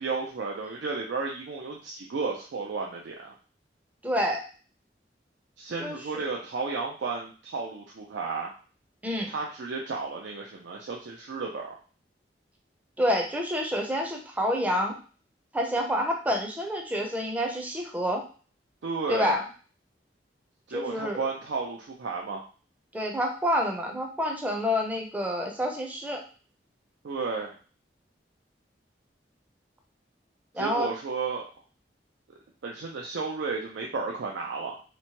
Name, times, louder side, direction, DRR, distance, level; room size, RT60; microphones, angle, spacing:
voice 1, 0.0-3.3 5.6-8.6 9.3-11.8 18.8-19.3 20.7-22.4 27.0-27.6 30.6-31.4 32.6-34.8, right 4 dB, 85° right, -1 dB, 0.4 m, -33 dB
voice 2, 4.0-4.4 5.8-6.2 9.0-9.3 13.0-15.0 15.5-18.2 19.1-19.4 20.7-21.2 22.9-26.2 30.5-30.9, equal, 10° right, 1 dB, 0.5 m, -28 dB
3.0 x 2.1 x 2.8 m, 0.38 s
head